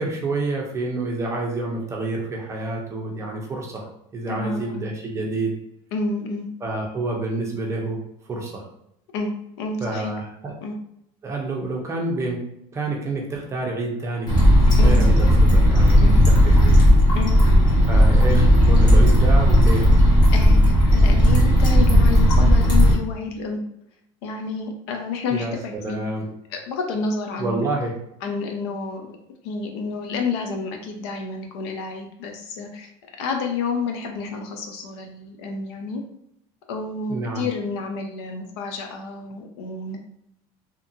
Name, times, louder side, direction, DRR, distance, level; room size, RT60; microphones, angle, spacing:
voice 1, 0.0-3.9 4.1-5.5 6.6-8.0 8.3-8.7 9.8-10.5 11.2-12.4 12.7-14.4 14.8-16.8 17.9-19.9 25.3-26.3 27.4-27.9 37.1-37.5, right 2 dB, 20° right, 0 dB, 0.6 m, -28 dB
voice 2, 4.3-4.8 5.9-6.5 9.1-10.1 10.6-10.8 14.8-15.0 16.0-16.2 17.1-17.3 20.3-23.6 24.2-26.0 26.5-27.7 28.2-29.2 29.4-32.9 33.2-36.0 36.7-40.0, left 4 dB, 80° left, 3 dB, 0.6 m, -29 dB
sound 1, 14.3-22.9, equal, 30° left, 1.0 m, -14 dB
2.8 x 2.5 x 2.6 m, 0.77 s
supercardioid pair, 135°, 14 cm